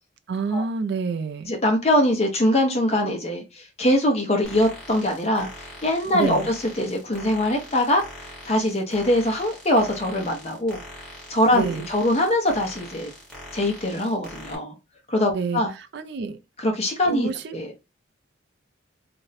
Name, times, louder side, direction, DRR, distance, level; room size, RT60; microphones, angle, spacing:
voice 1, 0.3-1.5 6.1-6.5 11.5-11.9 15.3-16.4 17.1-17.6, right 5 dB, 60° right, 0.4 m, -28 dB
voice 2, 1.5-10.8 11.3-13.1 13.5-14.7 15.1-15.7 16.6-17.8, left 1 dB, 35° left, 0.7 m, -23 dB
sound 1, 4.4-14.6, left 1 dB, 5° left, 1.0 m, -42 dB
2.5 x 2.1 x 4.0 m
head